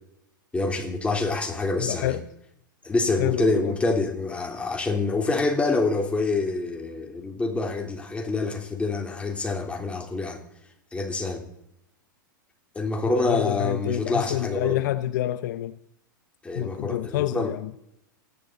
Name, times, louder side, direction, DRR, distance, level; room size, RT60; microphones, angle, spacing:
voice 1, 0.5-2.2 2.8-10.4 10.9-11.5 12.8-14.8 16.4-17.5, left 3 dB, 10° left, 3.5 m, -26 dB
voice 2, 1.8-2.2 3.2-3.7 13.1-15.8 16.6-17.7, left 13 dB, 60° left, 0.7 m, -27 dB
28.0 x 11.0 x 4.1 m
hypercardioid pair, 110°, 11 cm